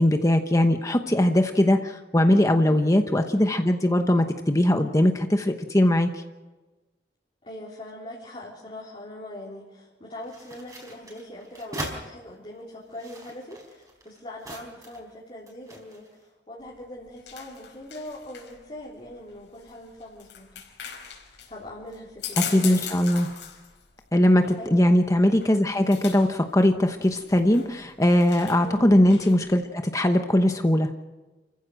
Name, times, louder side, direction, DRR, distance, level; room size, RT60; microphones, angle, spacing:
voice 1, 0.0-6.2 22.5-23.3 24.1-30.9, left 1 dB, 20° left, 6 dB, 1.0 m, -20 dB
voice 2, 2.6-3.0 7.4-20.6 21.5-22.9 24.6-24.8 28.6-28.9, left 1 dB, 35° left, -6 dB, 3.7 m, -41 dB
sound 1, 10.2-12.0 12.8-15.1 15.5-16.1, right 1 dB, 20° right, 4.5 m, -40 dB
sound 2, 16.6-29.6, left 8 dB, 85° left, 4.8 m, -40 dB
28.5 x 15.0 x 6.4 m, 1.2 s
head